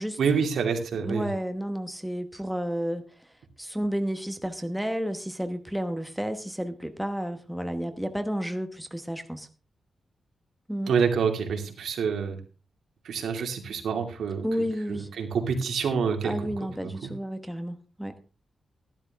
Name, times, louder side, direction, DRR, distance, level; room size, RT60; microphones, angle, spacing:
voice 1, 0.2-1.3 10.9-12.4 13.0-14.4 14.9-16.5 16.8-17.1, right 6 dB, 85° right, 2.6 m, -27 dB
voice 2, 1.0-3.1 3.6-9.5 10.7-11.0 14.4-15.1 16.2-18.2, equal, ahead, 1.1 m, -31 dB
13.0 x 12.0 x 3.6 m
wide cardioid pair, 140°, 0 cm